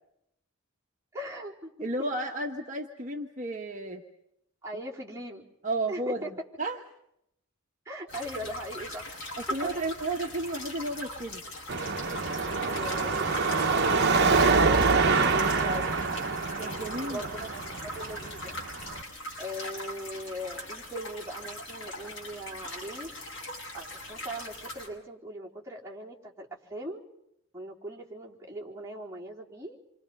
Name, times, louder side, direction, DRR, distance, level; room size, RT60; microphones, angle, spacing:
voice 1, 1.1-1.9 4.6-5.4 5.9-6.3 7.9-9.1 12.6-15.9 17.0-18.5 19.4-23.1 23.7-27.0 27.5-29.8, equal, 15° right, -4 dB, 4.1 m, -40 dB
voice 2, 1.8-4.0 5.6-6.8 9.4-11.4 13.7-14.0 16.6-17.3, right 2 dB, 35° right, 1 dB, 1.4 m, -33 dB
sound 1, 8.1-24.9, left 1 dB, 60° left, 7.7 m, -41 dB
Car passing by / Traffic noise roadway noise / Engine, 11.7-19.0, right 4 dB, 50° right, 1.2 m, -26 dB
28.5 x 25.0 x 5.6 m, 0.80 s
head